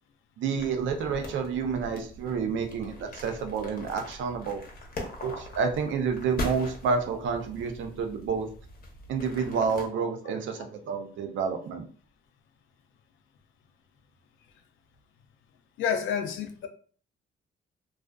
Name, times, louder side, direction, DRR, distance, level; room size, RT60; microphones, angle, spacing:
voice 1, 0.4-4.6 5.2-8.5 9.1-11.9, right 5 dB, 75° right, 0.5 m, -29 dB
sound 1, 0.6-9.9, left 1 dB, 45° left, 0.7 m, -41 dB
voice 2, 15.8-16.7, left 7 dB, 80° left, 0.5 m, -29 dB
2.4 x 2.3 x 2.2 m
cardioid pair, 90°, 20 cm